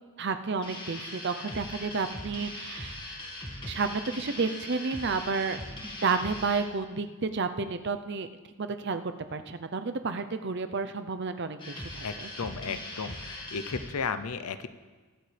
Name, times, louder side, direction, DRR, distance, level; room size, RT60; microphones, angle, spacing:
voice 1, 0.2-3.2 3.6-5.6 6.0-8.3 8.6-9.0 9.3-12.3, right 4 dB, 50° right, 9 dB, 0.6 m, -31 dB
sound 1, 0.6-6.7 11.6-13.9, left 1 dB, 20° left, 1.7 m, -40 dB
voice 2, 12.0-14.7, left 5 dB, 85° left, 12 dB, 0.6 m, -34 dB
22.5 x 8.5 x 3.4 m, 1.4 s
head